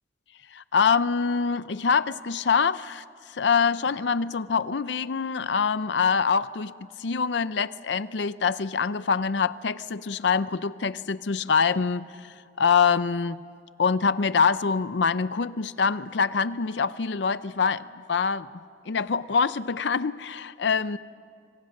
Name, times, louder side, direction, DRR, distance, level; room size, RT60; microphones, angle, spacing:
voice 1, 0.5-6.7 7.0-13.4 13.8-17.8 18.1-18.5 18.9-21.0, left 5 dB, 70° left, 15 dB, 0.5 m, -25 dB
27.0 x 25.5 x 6.5 m, 2.4 s
head